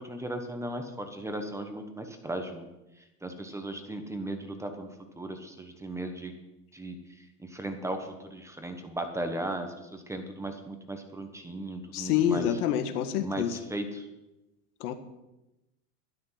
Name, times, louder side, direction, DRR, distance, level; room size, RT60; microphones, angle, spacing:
voice 1, 0.0-2.7 3.2-4.9 5.2-6.3 6.7-7.0 7.4-12.6 13.2-14.1, right 1 dB, 5° right, 6 dB, 1.2 m, -36 dB
voice 2, 11.9-13.6 14.8-14.9, left 10 dB, 75° left, 9 dB, 1.8 m, -27 dB
12.5 x 12.0 x 5.9 m, 0.96 s
supercardioid pair, 135°, 46 cm